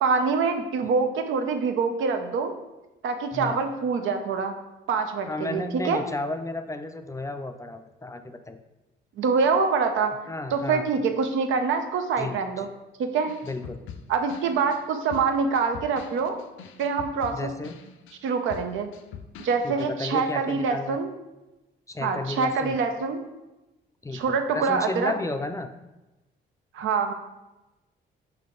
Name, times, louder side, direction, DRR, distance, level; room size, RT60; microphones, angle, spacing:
voice 1, 0.0-2.5 3.0-4.5 4.9-6.0 9.2-10.1 10.5-12.7 13.0-13.3 14.1-16.4 16.8-17.5 18.2-18.9 19.4-21.1 22.0-23.2 24.1-25.1 26.7-27.1, right 5 dB, 80° right, 6 dB, 0.7 m, -25 dB
voice 2, 5.3-8.6 10.3-10.8 12.2-12.7 13.4-13.8 17.3-17.8 19.6-21.0 21.9-22.8 24.0-25.7, left 2 dB, 15° left, 8 dB, 0.4 m, -33 dB
sound 1, 13.3-19.9, left 7 dB, 80° left, 0.5 m, -44 dB
5.7 x 4.5 x 3.8 m, 1.0 s
cardioid pair, 90°, 20 cm